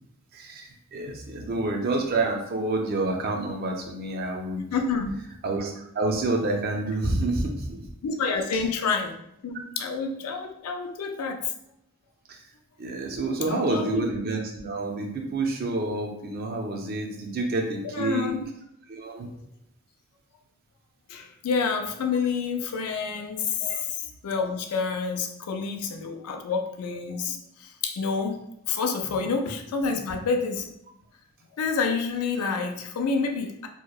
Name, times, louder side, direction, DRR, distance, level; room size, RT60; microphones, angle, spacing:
voice 1, 0.3-4.6 5.4-7.8 8.5-8.6 12.3-12.4 12.8-18.3 18.9-19.3 23.6-23.8 29.1-29.2, right 2 dB, 45° right, 2 dB, 0.4 m, -28 dB
voice 2, 4.7-5.1 8.0-9.1 9.4-11.4 13.5-14.1 17.8-18.4 19.2-19.4 21.1-28.4 28.7-30.7 31.6-33.7, left 5 dB, 90° left, 4 dB, 0.4 m, -28 dB
2.8 x 2.0 x 2.3 m, 0.77 s
head